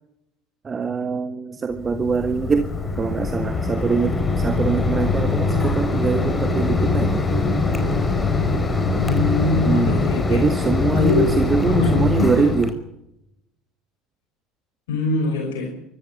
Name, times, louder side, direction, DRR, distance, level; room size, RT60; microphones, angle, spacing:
voice 1, 0.6-2.7 3.0-7.2 9.7-12.7, right 5 dB, 30° right, 8 dB, 1.9 m, -23 dB
Mechanisms, 1.7-12.7, left 3 dB, 20° left, 4.7 m, -22 dB
voice 2, 9.0-10.4 11.0-11.3 11.7-12.3 14.9-15.7, left 3 dB, 85° left, 3 dB, 5.3 m, -22 dB
24.5 x 14.5 x 7.4 m, 0.83 s
hypercardioid pair, 85°, 0 cm